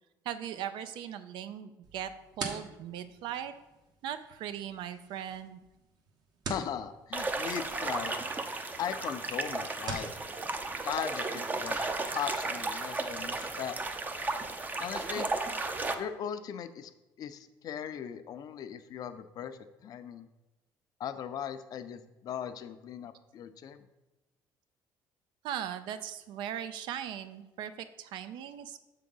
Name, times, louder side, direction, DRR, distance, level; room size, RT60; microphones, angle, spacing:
voice 1, 0.2-2.1 2.4-3.5 4.0-5.6 25.4-28.8, right 10 dB, 75° right, 12 dB, 0.5 m, -39 dB
sound 1, 1.8-10.2, right 4 dB, 60° right, 1.1 m, -45 dB
voice 2, 6.5-8.1 8.8-10.1 10.8-13.8 14.8-15.3 16.0-16.9 17.2-20.3 21.0-23.9, left 9 dB, 50° left, 10 dB, 0.5 m, -38 dB
sound 2, 7.1-15.9, right 3 dB, 20° right, 0.5 m, -34 dB
6.8 x 3.7 x 5.4 m, 1.0 s
cardioid pair, 110°, 8 cm